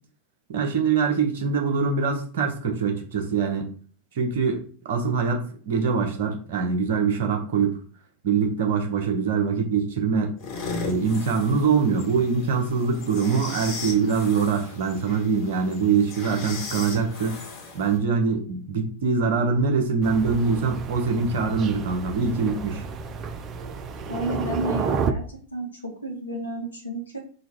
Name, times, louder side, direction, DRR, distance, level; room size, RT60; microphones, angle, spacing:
voice 1, 0.5-3.7 4.1-4.6 4.8-7.8 8.2-10.3 10.8-17.4 17.7-22.8, right 5 dB, 55° right, 3 dB, 1.0 m, -23 dB
sound 1, 10.4-18.0, left 3 dB, 45° left, 1.2 m, -37 dB
Thunder, 20.0-25.1, right 6 dB, 30° right, 0.4 m, -31 dB
voice 2, 24.1-27.2, right 1 dB, 80° left, 2 dB, 1.2 m, -31 dB
3.9 x 2.4 x 4.6 m, 0.43 s
figure-of-eight pair, 90°, 0 cm